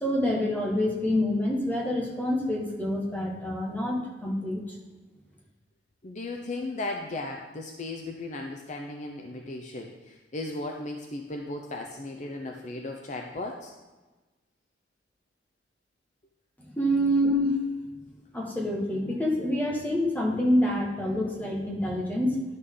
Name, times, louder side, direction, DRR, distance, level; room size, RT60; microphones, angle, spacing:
voice 1, 0.0-4.6 16.7-17.6 18.3-22.4, left 1 dB, 10° left, -1 dB, 1.4 m, -27 dB
voice 2, 6.0-13.7, left 2 dB, 40° left, 2 dB, 0.6 m, -36 dB
10.5 x 6.5 x 3.8 m, 1.2 s
head